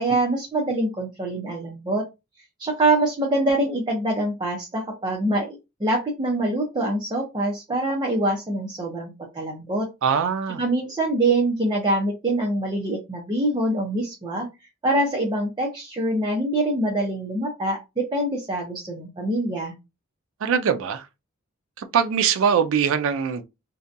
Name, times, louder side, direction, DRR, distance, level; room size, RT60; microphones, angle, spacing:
voice 1, 0.0-2.0 2.6-9.9 10.6-14.5 14.8-19.7, right 1 dB, 20° right, 0.6 m, -24 dB
voice 2, 10.0-10.6 20.4-21.1 21.8-23.4, right 7 dB, 65° right, 0.3 m, -22 dB
2.7 x 2.2 x 2.5 m
head